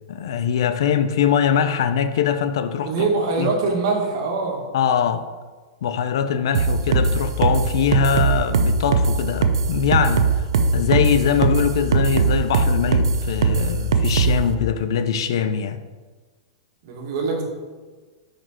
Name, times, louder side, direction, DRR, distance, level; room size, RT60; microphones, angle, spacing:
voice 1, 0.1-3.1 3.4-3.5 4.7-5.3 5.8-10.3 10.7-15.8, left 8 dB, 70° left, 0.5 m, -22 dB
voice 2, 2.8-4.6 16.8-17.4, right 3 dB, 60° right, 1.7 m, -23 dB
sound 1, 6.5-14.4, right 5 dB, 80° right, 0.6 m, -19 dB
6.0 x 5.0 x 4.5 m
hypercardioid pair, 125°, 3 cm